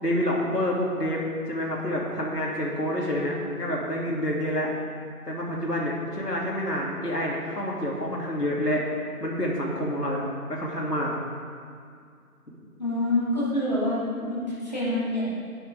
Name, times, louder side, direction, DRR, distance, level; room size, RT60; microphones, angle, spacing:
voice 1, 0.0-1.2 1.5-4.7 5.3-8.8 9.2-10.2 10.5-11.1, equal, 85° left, -3 dB, 2.9 m, -28 dB
voice 2, 12.8-15.3, left 1 dB, 25° left, -10 dB, 2.5 m, -26 dB
11.5 x 10.0 x 3.6 m, 2.2 s
figure-of-eight pair, 180°, 46 cm